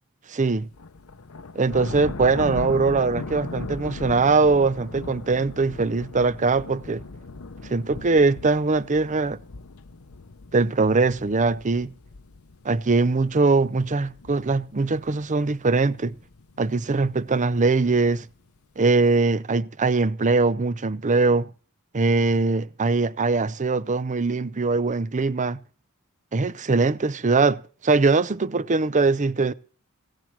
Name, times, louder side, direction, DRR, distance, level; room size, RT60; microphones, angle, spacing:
voice 1, 0.3-0.7 1.6-7.0 7.7-9.4 10.5-11.9 12.6-16.1 16.6-18.2 18.8-21.5 21.9-25.6 26.3-29.5, right 3 dB, 35° right, 0.6 m, -22 dB
sound 1, 0.6-18.6, left 3 dB, 75° left, 0.9 m, -39 dB
17.0 x 7.6 x 7.4 m
head